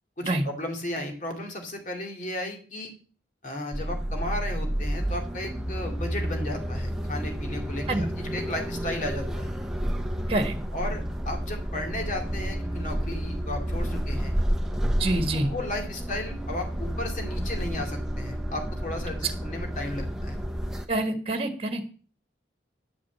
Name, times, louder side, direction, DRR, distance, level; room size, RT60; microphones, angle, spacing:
voice 1, 0.2-2.9 3.4-9.5 10.7-14.3 15.3-20.4, left 1 dB, 40° left, 2 dB, 2.6 m, -34 dB
sound 1, 3.7-20.9, equal, 5° right, 0.9 m, -30 dB
voice 2, 15.0-15.5 20.9-21.8, right 2 dB, 30° right, 7 dB, 1.6 m, -26 dB
11.0 x 5.0 x 8.4 m, 0.41 s
head